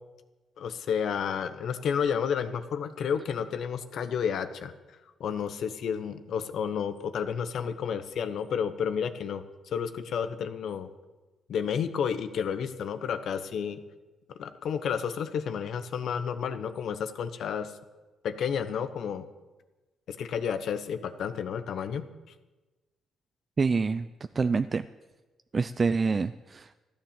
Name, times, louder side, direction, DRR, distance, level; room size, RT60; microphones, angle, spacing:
voice 1, 0.6-4.7 5.2-9.4 9.7-10.9 11.5-13.8 14.3-17.7 18.2-19.3 20.1-22.1, left 7 dB, 65° left, 10 dB, 1.0 m, -31 dB
voice 2, 23.6-24.1 24.4-24.8 25.5-26.7, right 4 dB, 35° right, 11 dB, 0.4 m, -26 dB
14.5 x 10.5 x 7.2 m, 1.2 s
cardioid pair, 90°, 0 cm